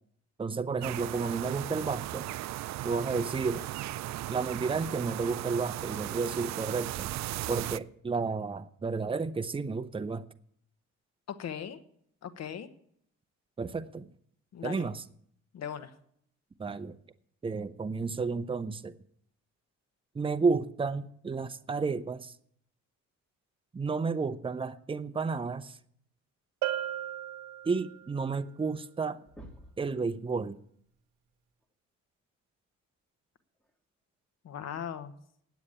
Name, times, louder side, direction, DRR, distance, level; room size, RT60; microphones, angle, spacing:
voice 1, 0.4-2.3 2.8-3.7 4.3-7.1 7.5-10.2 13.6-14.1 14.6-15.0 16.6-17.0 17.4-18.9 20.1-22.3 23.7-25.8 27.6-29.2 29.8-30.6, right 4 dB, 20° right, 11 dB, 0.6 m, -32 dB
sound 1, 0.8-7.8, right 15 dB, 65° right, 0.4 m, -37 dB
voice 2, 11.3-11.8 12.2-12.7 14.5-14.9 15.5-15.9 34.4-35.1, left 8 dB, 60° left, 11 dB, 1.1 m, -38 dB
Bell, 26.6-28.2, right 11 dB, 90° right, 0.9 m, -35 dB
sound 2, 28.9-29.0 29.2-29.9 31.6-31.7 33.6-33.7 34.6-34.7, equal, 5° left, 2.0 m, -50 dB
9.4 x 8.0 x 8.7 m, 0.67 s
cardioid pair, 90°, 30 cm